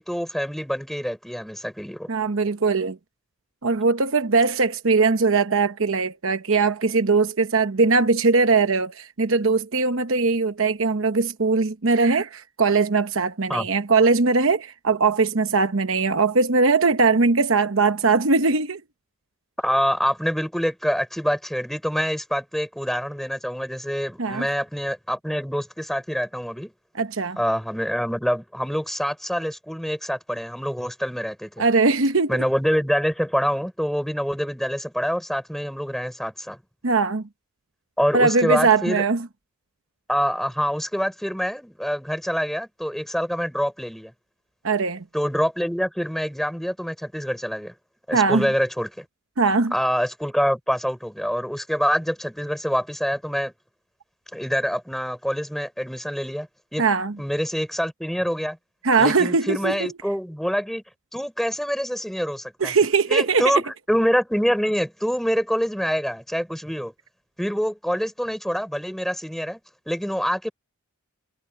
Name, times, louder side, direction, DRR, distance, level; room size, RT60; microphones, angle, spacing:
voice 1, 0.0-2.1 13.5-13.7 19.6-26.7 27.4-31.6 32.3-36.6 38.0-39.0 40.1-44.1 45.1-47.7 48.1-49.0 49.7-53.5 54.3-56.9 57.2-58.6 59.0-60.8 61.1-62.7 63.1-66.9 67.4-69.6 69.9-70.5, equal, ahead, 6.1 m, -26 dB
voice 2, 2.1-3.0 3.6-18.8 24.2-24.5 26.9-27.4 31.6-32.4 36.8-37.2 38.1-39.3 44.6-45.0 48.1-48.5 49.4-49.7 56.8-57.1 58.8-59.9 62.6-63.5, right 4 dB, 60° right, 1.0 m, -20 dB
head